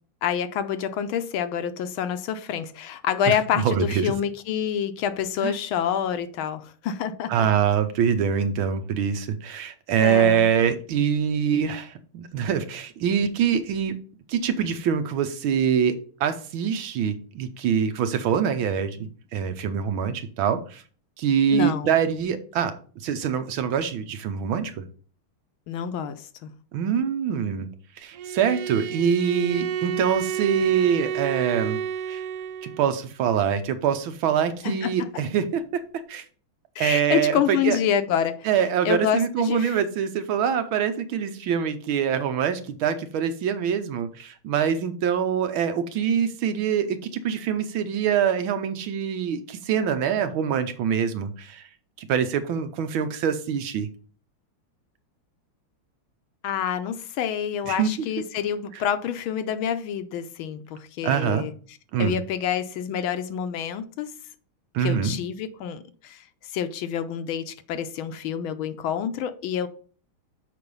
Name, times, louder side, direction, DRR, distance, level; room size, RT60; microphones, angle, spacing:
voice 1, 0.2-7.5 10.0-10.5 21.5-21.9 25.7-26.5 34.6-34.9 36.8-38.5 38.8-39.8 56.4-61.5 62.0-64.1 64.8-69.7, left 9 dB, 75° left, 1.4 m, -27 dB
voice 2, 3.3-4.1 5.4-5.5 7.3-14.0 14.3-20.8 21.2-22.8 23.0-24.8 26.7-27.7 28.0-31.8 32.1-32.2 32.6-35.8 36.1-36.2 36.8-37.8 38.4-51.7 52.0-53.9 57.7-57.9 61.0-61.4 61.9-62.2 64.7-65.1, right 8 dB, 75° right, 1.5 m, -24 dB
Bowed string instrument, 28.1-32.9, right 8 dB, 90° right, 1.5 m, -30 dB
6.8 x 4.9 x 5.3 m
omnidirectional pair, 2.4 m